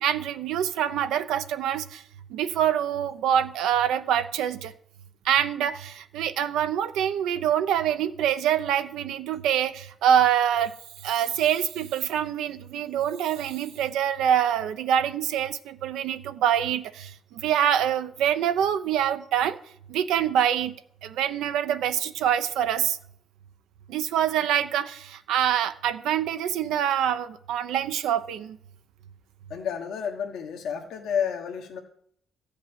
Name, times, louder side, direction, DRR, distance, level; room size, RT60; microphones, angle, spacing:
voice 1, 0.0-2.0 2.3-4.7 5.2-10.7 11.0-19.6 19.9-20.8 21.0-23.0 23.9-28.6, right 9 dB, 90° right, 9 dB, 0.9 m, -25 dB
voice 2, 29.5-31.8, left 7 dB, 80° left, 1 dB, 1.2 m, -30 dB
14.0 x 5.2 x 8.9 m, 0.67 s
cardioid pair, 90°, 0 cm